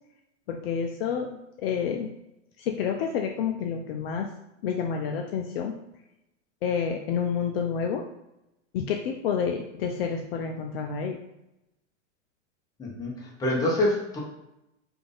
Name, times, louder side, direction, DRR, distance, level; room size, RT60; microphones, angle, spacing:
voice 1, 0.5-2.1 2.6-4.3 4.6-5.7 6.6-8.0 8.7-11.2, left 7 dB, 50° left, 2 dB, 0.4 m, -29 dB
voice 2, 12.8-14.2, left 1 dB, 10° left, -4 dB, 0.7 m, -26 dB
3.3 x 2.5 x 3.8 m, 0.88 s
supercardioid pair, 145°, 38 cm